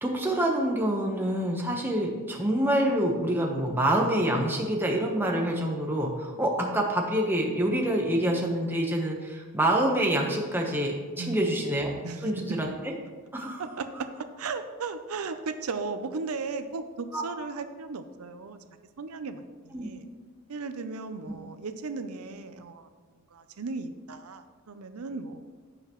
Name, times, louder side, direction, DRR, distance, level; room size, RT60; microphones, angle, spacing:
voice 1, 0.0-11.9 12.2-12.9 13.3-13.6 17.1-17.2 19.7-19.9 21.3-21.4, right 1 dB, 10° right, 0 dB, 1.0 m, -26 dB
voice 2, 11.2-11.6 12.0-12.6 13.6-14.1 14.4-20.0 20.5-22.9 23.3-25.5, right 4 dB, 85° right, 9 dB, 0.6 m, -36 dB
15.5 x 5.7 x 3.1 m, 1.4 s
head